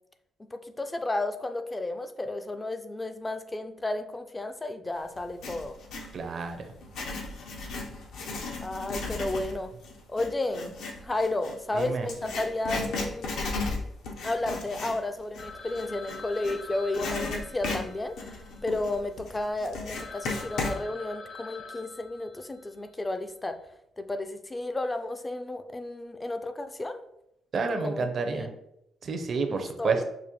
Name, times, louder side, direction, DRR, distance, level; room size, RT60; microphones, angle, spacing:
voice 1, 0.4-5.8 8.6-9.7 10.1-10.7 11.0-13.3 14.2-18.4 18.6-23.6 24.0-27.0 27.8-28.5 29.5-30.0, left 2 dB, 20° left, 8 dB, 0.3 m, -32 dB
Writing, 5.2-6.1 6.7-16.6 16.9-20.8, left 3 dB, 80° left, 0.7 m, -35 dB
voice 2, 6.1-6.7 11.7-12.1 27.5-28.5 29.0-30.0, right 4 dB, 50° right, 6 dB, 0.5 m, -29 dB
Telephone, 15.4-19.2 19.6-19.7 19.9-22.8, left 4 dB, 50° left, 0.8 m, -45 dB
4.9 x 2.1 x 2.9 m, 0.81 s
cardioid pair, 90°, 0 cm